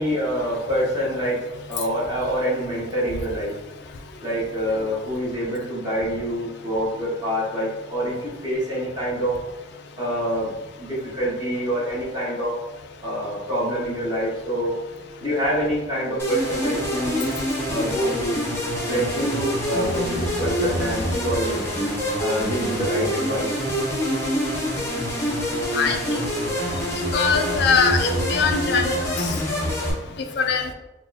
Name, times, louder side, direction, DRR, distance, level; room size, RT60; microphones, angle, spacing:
voice 1, 0.0-1.4 1.7-3.5 4.2-9.4 9.9-12.5 13.0-14.7 15.2-17.3 17.7-18.4 18.9-21.6 22.2-23.6 29.9-30.1, equal, 20° right, -9 dB, 1.2 m, -26 dB
sound 1, 16.2-29.9, equal, 15° left, 0.6 m, -26 dB
voice 2, 25.7-26.2 26.5-26.8 27.1-29.3 30.4-30.7, left 5 dB, 55° left, 5 dB, 0.3 m, -22 dB
3.9 x 2.4 x 2.6 m, 1.1 s
head